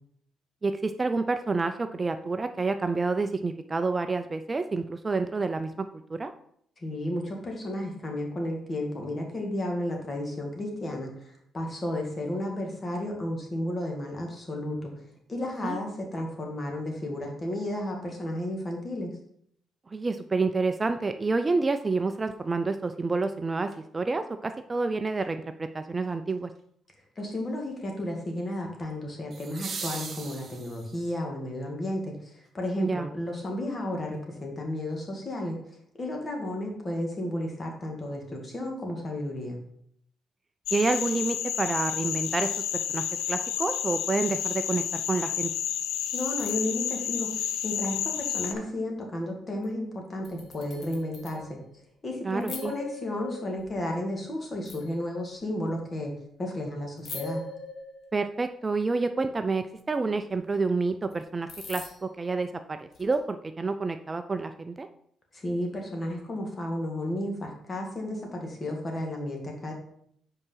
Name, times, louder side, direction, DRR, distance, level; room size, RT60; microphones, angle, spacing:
voice 1, 0.6-6.3 15.6-15.8 19.9-26.5 32.8-33.1 40.7-42.5 42.9-45.5 52.2-52.7 58.1-64.9, right 3 dB, 25° right, 8 dB, 0.4 m, -29 dB
voice 2, 6.8-14.9 15.3-19.1 27.2-32.1 32.5-35.6 36.0-39.6 46.1-47.3 47.6-51.6 52.0-56.1 56.4-57.4 65.3-69.7, left 1 dB, 30° left, 1 dB, 2.0 m, -33 dB
sound 1, 23.7-23.8 29.3-31.1 33.3-33.4, right 5 dB, 45° right, 1.0 m, -39 dB
sound 2, 40.7-48.5, left 10 dB, 85° left, 0.5 m, -30 dB
sound 3, 45.9-46.6 47.3-47.7 48.0-48.1 48.4-48.8 49.6-49.7 50.2-51.7 52.4-53.9 54.7-55.7 57.0-58.4 60.3-60.4 61.1-61.2 61.5-62.2 62.9-63.2, left 3 dB, 60° left, 1.4 m, -42 dB
5.4 x 4.8 x 5.5 m, 0.67 s
cardioid pair, 90°, 0 cm